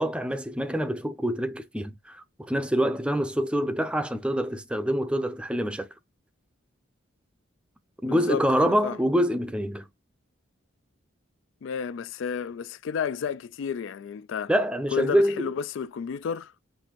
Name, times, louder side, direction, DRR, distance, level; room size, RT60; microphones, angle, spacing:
voice 1, 0.0-5.9 8.0-9.9 14.5-15.5, equal, 5° right, 0.5 m, -26 dB
voice 2, 8.1-9.0 11.6-14.5 14.9-16.5, left 7 dB, 70° left, 0.3 m, -32 dB
6.1 x 2.6 x 3.0 m
head